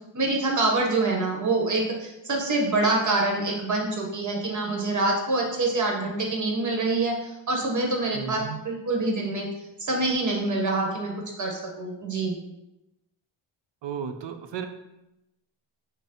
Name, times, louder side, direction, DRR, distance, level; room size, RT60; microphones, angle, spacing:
voice 1, 0.1-9.5 9.8-12.4, right 2 dB, 35° right, 0 dB, 0.9 m, -26 dB
voice 2, 8.1-8.6 13.8-14.7, right 7 dB, 60° right, 7 dB, 0.6 m, -34 dB
5.4 x 2.0 x 4.3 m, 0.91 s
wide cardioid pair, 155°, 49 cm